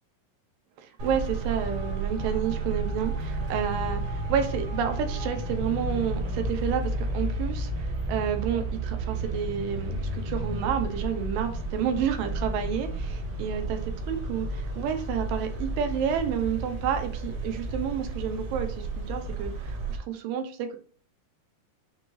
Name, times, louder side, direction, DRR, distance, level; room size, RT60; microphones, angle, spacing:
voice 1, 0.8-20.8, right 8 dB, 85° right, 7 dB, 2.4 m, -30 dB
Traffic noise roadway noise, 1.0-20.0, right 2 dB, 60° right, 1.9 m, -32 dB
6.3 x 2.7 x 3.0 m, 0.43 s
omnidirectional pair, 3.9 m